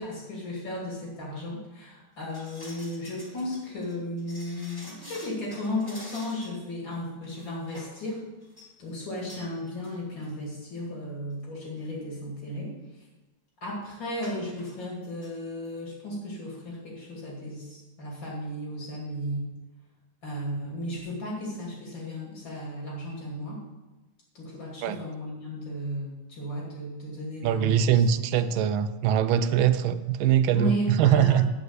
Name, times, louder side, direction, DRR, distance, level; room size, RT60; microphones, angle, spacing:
voice 1, 0.0-8.2 8.8-13.0 13.6-19.5 20.2-23.6 24.3-28.1 30.5-31.4, equal, 70° left, 3.1 m, -34 dB
sound 1, 2.2-6.6 6.9-7.0 7.3-8.0 8.4-8.7 9.3-9.5 9.8-9.9 10.2-10.3 11.1-11.2 11.5-11.8 14.2-14.7 15.0-15.3 15.6-15.7, left 1 dB, 10° left, 1.8 m, -47 dB
voice 2, 27.4-30.7 31.0-31.5, right 9 dB, 85° right, 1.4 m, -22 dB
9.6 x 5.2 x 7.9 m
omnidirectional pair, 2.2 m